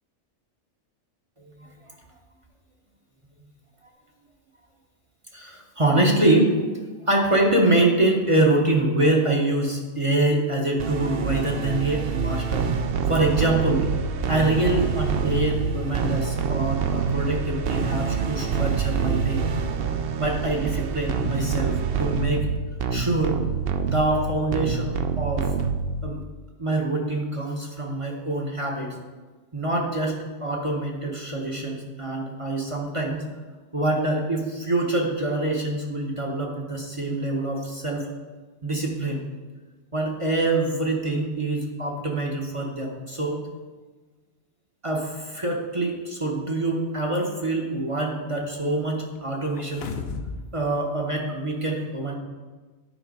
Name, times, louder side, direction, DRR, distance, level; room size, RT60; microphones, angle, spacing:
voice 1, 5.3-6.6 7.1-12.7 13.1-13.9 14.3-19.4 20.2-22.5 22.9-23.4 23.8-25.5 26.0-26.2 26.6-28.9 29.5-33.2 33.7-38.1 38.6-39.2 39.9-43.4 44.8-49.9 50.5-52.1, right 2 dB, 30° right, 0 dB, 0.9 m, -25 dB
sound 1, 10.8-26.2, right 6 dB, 60° right, 0.7 m, -26 dB
sound 2, 49.6-50.4 50.8-50.9, left 5 dB, 65° left, 0.9 m, -32 dB
9.2 x 4.5 x 5.3 m, 1.3 s
omnidirectional pair, 1.2 m